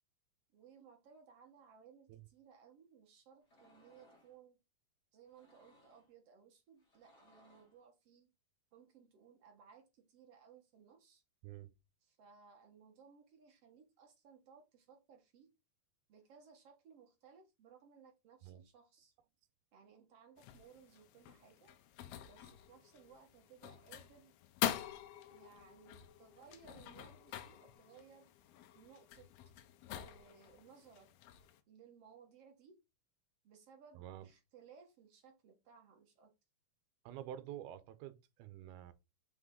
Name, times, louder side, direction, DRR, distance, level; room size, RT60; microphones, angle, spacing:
voice 1, 0.5-4.6 5.1-8.3 8.7-11.2 12.0-15.5 16.1-19.1 19.7-21.7 22.3-24.4 25.3-28.3 28.7-29.3 29.9-31.1 31.7-32.8 33.4-36.3, right 6 dB, 55° right, 1.9 m, -62 dB
sound 1, 3.4-4.4 5.2-6.1 6.8-7.8, left 1 dB, 20° left, 2.3 m, -67 dB
sound 2, 20.4-31.6, left 12 dB, 80° left, 2.6 m, -45 dB
voice 2, 33.9-34.3 37.1-38.9, right 11 dB, 80° right, 2.6 m, -48 dB
6.2 x 5.7 x 3.8 m
omnidirectional pair, 4.5 m